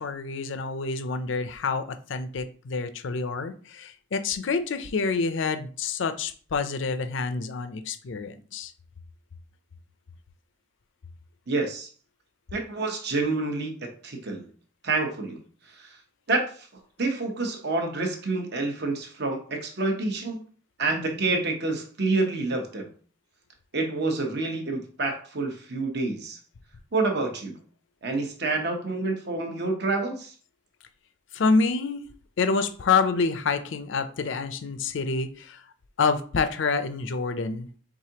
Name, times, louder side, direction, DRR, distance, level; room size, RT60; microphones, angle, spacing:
voice 1, 0.0-8.7 31.3-32.0 32.4-35.6 36.0-37.7, left 4 dB, 65° left, 10 dB, 0.5 m, -27 dB
voice 2, 11.5-11.9 12.5-14.4 14.8-15.4 15.7-16.0 16.3-16.7 17.0-20.4 20.8-22.9 23.7-26.4 26.9-27.5 28.0-30.3, right 3 dB, 55° right, 3 dB, 0.9 m, -28 dB
4.8 x 3.6 x 2.8 m, 0.43 s
head